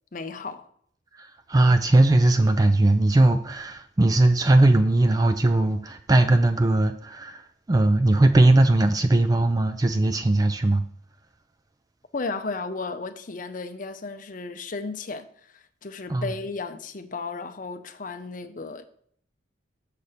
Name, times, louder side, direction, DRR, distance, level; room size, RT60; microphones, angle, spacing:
voice 1, 0.1-0.7 12.1-18.8, left 3 dB, 40° left, 0.6 m, -34 dB
voice 2, 1.2-10.8 16.1-16.2, right 2 dB, 20° right, 0.3 m, -19 dB
6.6 x 4.2 x 6.6 m
head